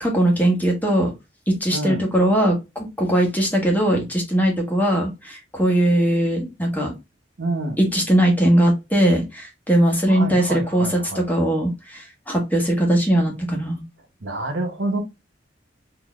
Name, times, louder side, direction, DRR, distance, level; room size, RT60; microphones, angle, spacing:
voice 1, 0.0-1.1 1.5-6.9 7.8-13.8, right 1 dB, 10° left, 1.2 m, -20 dB
voice 2, 1.7-2.0 7.4-7.8 10.1-11.2 14.2-15.0, right 2 dB, 85° right, 0.9 m, -27 dB
3.8 x 2.8 x 2.3 m
head